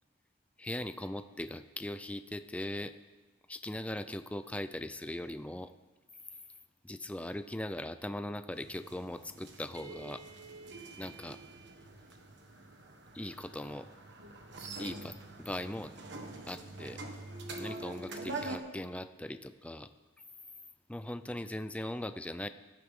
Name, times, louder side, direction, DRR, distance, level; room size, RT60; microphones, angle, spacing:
voice 1, 0.6-2.9 3.5-5.7 6.8-10.3 11.0-11.4 13.1-13.9 14.8-15.9 16.5-17.0 17.6-19.9 20.9-22.5, left 1 dB, 5° left, 11 dB, 0.4 m, -40 dB
sound 1, 8.5-18.6, right 2 dB, 60° right, 1.6 m, -45 dB
18.5 x 14.0 x 3.7 m, 1.2 s
head